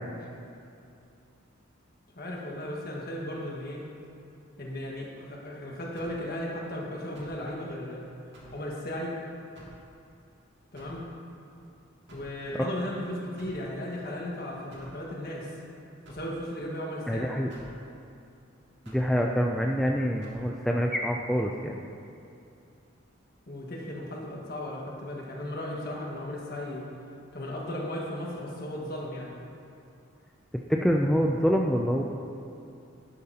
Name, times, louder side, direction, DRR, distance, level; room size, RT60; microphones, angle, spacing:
voice 1, 2.1-3.8 4.6-8.1 8.5-9.1 10.7-11.0 12.1-15.5 16.1-17.3 23.5-26.8 27.3-29.3, left 1 dB, 45° left, -2 dB, 1.6 m, -36 dB
sound 1, 6.0-6.3 7.1-7.4 8.3-8.6 9.5-9.8 10.7-11.0 12.1-12.4 13.4-13.7 14.7-15.0 16.0-16.3 17.5-17.8 18.8-19.1 20.2-20.4, right 1 dB, 55° right, 2.0 m, -50 dB
voice 2, 17.1-17.5 18.9-21.8 30.7-32.0, equal, ahead, 0 dB, 0.3 m, -26 dB
11.5 x 10.5 x 2.9 m, 2.6 s
head